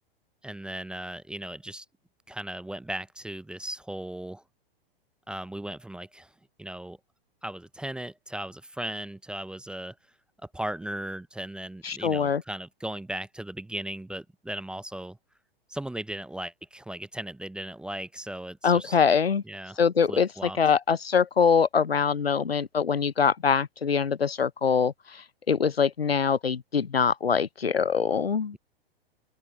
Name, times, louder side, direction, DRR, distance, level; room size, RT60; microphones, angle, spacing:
voice 1, 0.4-1.9 2.3-4.4 5.3-6.3 6.6-7.0 7.4-10.0 10.4-15.2 15.7-19.0 19.5-19.8 20.1-20.6, right 1 dB, 5° right, 0.6 m, -37 dB
voice 2, 11.8-12.4 18.6-19.4 19.8-28.6, left 6 dB, 85° left, 0.8 m, -24 dB
open air
figure-of-eight pair, 100°, 30 cm